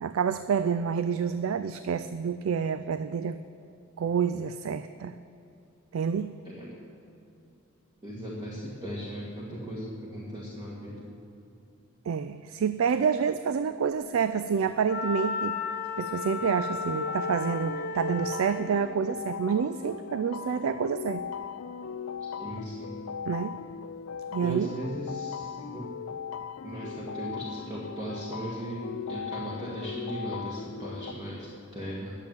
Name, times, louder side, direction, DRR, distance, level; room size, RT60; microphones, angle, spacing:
voice 1, 0.0-3.4 4.0-5.1 5.9-6.3 12.1-15.6 16.0-21.2 23.3-23.6 24.3-24.7, right 6 dB, 75° right, 12 dB, 0.4 m, -28 dB
voice 2, 8.0-11.0 22.4-23.0 24.4-25.9 26.6-32.1, equal, 20° right, -6 dB, 1.7 m, -37 dB
Wind instrument woodwind instrument, 14.9-18.6, left 3 dB, 50° left, 1.0 m, -33 dB
sound 1, 17.0-31.1, left 7 dB, 85° left, 0.4 m, -38 dB
10.5 x 7.4 x 9.2 m, 2.7 s
head